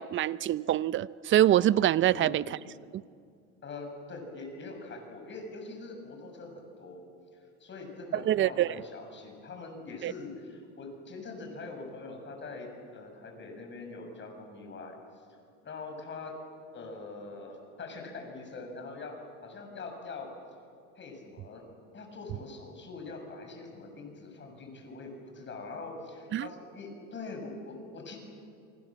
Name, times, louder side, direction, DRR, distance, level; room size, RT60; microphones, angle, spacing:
voice 1, 0.0-2.6 2.9-3.0 8.1-8.8 10.0-10.1 26.3-26.5, right 12 dB, 30° right, 0.6 m, -25 dB
voice 2, 3.6-7.0 7.6-15.0 15.6-16.4 16.7-20.3 20.9-21.6 21.9-28.2, left 3 dB, 30° left, 6.8 m, -43 dB
27.5 x 25.0 x 7.5 m
supercardioid pair, 105°, 39 cm